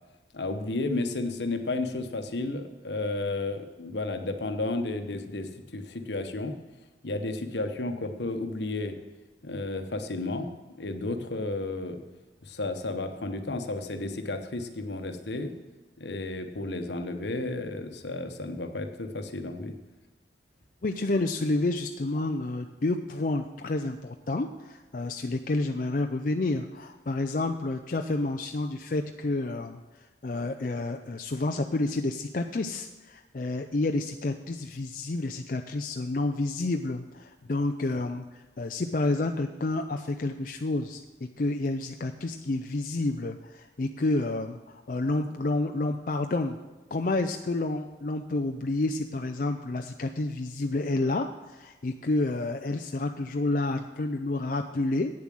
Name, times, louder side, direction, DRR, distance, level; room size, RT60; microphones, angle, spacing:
voice 1, 0.3-6.5 7.0-9.0 9.4-10.5 10.8-12.0 12.4-15.5 16.0-19.8, left 2 dB, 75° left, 7 dB, 1.1 m, -32 dB
voice 2, 20.8-29.8 30.2-41.0 41.4-46.6 46.9-55.1, left 2 dB, 50° left, 5 dB, 0.5 m, -29 dB
8.8 x 7.2 x 7.6 m, 1.2 s
head